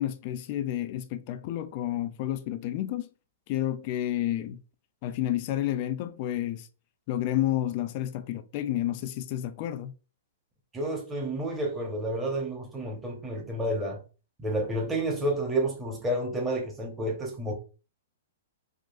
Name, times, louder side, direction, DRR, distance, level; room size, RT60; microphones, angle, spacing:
voice 1, 0.0-3.1 3.5-4.6 5.0-6.7 7.1-9.9, left 12 dB, 45° left, 0.3 m, -30 dB
voice 2, 10.7-14.0 14.4-17.5, right 1 dB, 15° right, 1.1 m, -30 dB
3.8 x 2.5 x 2.4 m
hypercardioid pair, 130°, 0 cm